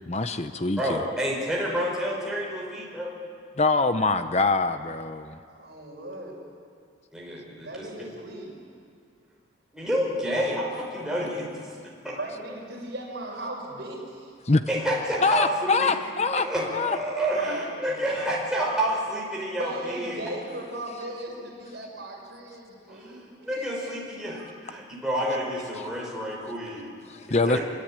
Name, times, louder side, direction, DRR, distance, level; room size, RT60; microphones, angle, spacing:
voice 1, 0.1-1.0 3.6-5.4 14.5-14.6 15.2-16.5 16.7-17.0 27.1-27.6, left 3 dB, 35° left, 9 dB, 0.7 m, -24 dB
voice 2, 0.8-3.1 7.1-7.9 9.7-11.5 12.0-12.2 14.7-15.9 16.4-20.2 22.9-26.9 27.5-27.6, equal, 5° right, -4 dB, 5.5 m, -29 dB
voice 3, 5.5-6.4 7.6-8.5 12.0-14.3 17.3-18.0 19.5-23.9, right 1 dB, 60° right, -1 dB, 5.6 m, -37 dB
26.0 x 23.5 x 9.1 m, 2.2 s
head